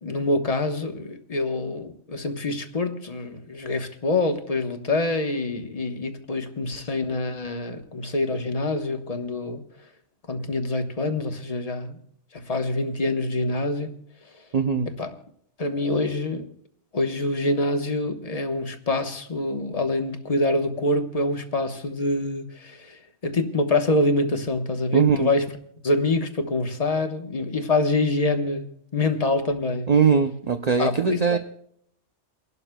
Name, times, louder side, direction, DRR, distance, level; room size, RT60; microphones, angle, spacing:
voice 1, 0.0-9.6 10.3-12.0 12.3-14.0 14.9-15.1 15.6-16.5 16.9-25.5 25.8-28.7 28.9-29.9 30.8-31.4, left 2 dB, 35° left, 1.1 m, -25 dB
voice 2, 14.5-14.9 24.9-25.3 29.9-31.4, right 6 dB, 45° right, 0.6 m, -20 dB
29.0 x 12.0 x 2.2 m
omnidirectional pair, 1.2 m